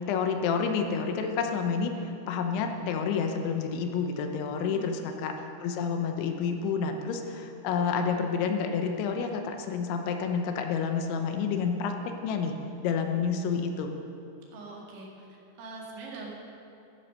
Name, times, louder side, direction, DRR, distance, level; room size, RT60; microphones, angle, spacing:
voice 1, 0.1-1.9 2.3-11.9 12.2-12.5 12.8-14.0, left 6 dB, 85° left, 5 dB, 3.3 m, -29 dB
voice 2, 14.5-16.3, right 3 dB, 80° right, -2 dB, 4.5 m, -43 dB
14.5 x 9.7 x 6.5 m, 2.7 s
omnidirectional pair, 5.3 m